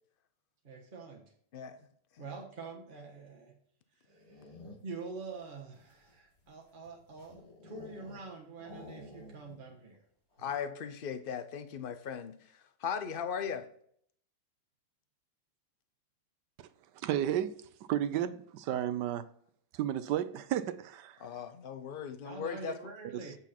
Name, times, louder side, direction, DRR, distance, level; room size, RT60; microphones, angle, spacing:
voice 1, 0.6-1.2 2.2-3.5 4.1-4.5 4.8-7.4 7.6-10.0 22.2-23.4, right 4 dB, 30° right, 1.5 m, -45 dB
sound 1, 4.1-5.1 5.7-8.3 8.6-9.7 9.9-10.0 10.3-10.7, left 2 dB, 55° left, 3.3 m, -51 dB
voice 2, 10.4-12.4 12.8-13.7 21.2-22.7, left 7 dB, 90° left, 0.4 m, -37 dB
voice 3, 17.0-17.5 17.9-19.3 19.7-21.2 23.1-23.2, right 11 dB, 85° right, 1.3 m, -32 dB
8.3 x 7.0 x 4.3 m
omnidirectional pair, 1.8 m